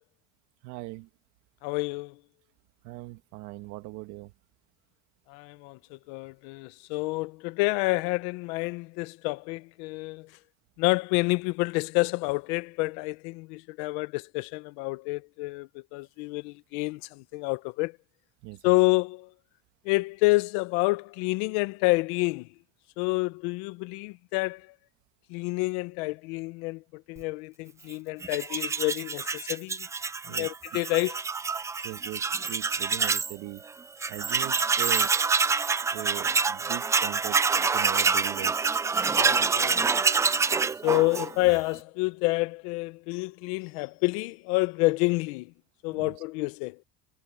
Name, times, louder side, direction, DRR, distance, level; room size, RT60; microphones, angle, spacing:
voice 1, 0.6-1.1 2.8-4.3 18.4-18.7 30.2-30.5 31.8-33.6 34.1-35.1 35.9-37.4 37.7-38.6 45.9-46.2, right 19 dB, 65° right, 1.7 m, -39 dB
voice 2, 1.6-2.1 5.3-10.3 10.8-17.9 18.6-19.3 19.8-22.5 23.0-24.7 25.3-29.9 30.3-31.2 39.1-39.9 40.8-45.5 45.8-46.8, left 24 dB, 85° left, 1.0 m, -28 dB
Tools, 28.2-33.3 33.7-33.8 34.0-41.6, right 5 dB, 10° right, 0.3 m, -26 dB
cardioid pair, 155°, 31 cm